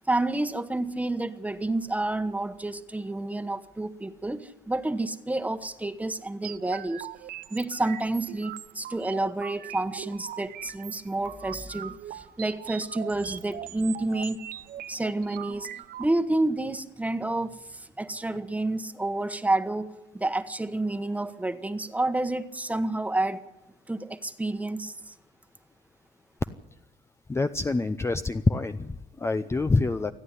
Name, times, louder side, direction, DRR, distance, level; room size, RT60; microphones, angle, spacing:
voice 1, 0.1-7.1 7.5-14.4 14.9-17.5 18.0-19.9 20.1-23.4 23.9-24.9, right 2 dB, 10° right, 10 dB, 1.2 m, -29 dB
sound 1, 6.4-16.1, right 12 dB, 60° right, 0.7 m, -41 dB
voice 2, 27.3-30.1, left 3 dB, 15° left, 10 dB, 0.6 m, -26 dB
27.5 x 9.7 x 9.9 m, 0.95 s
cardioid pair, 110°, 17 cm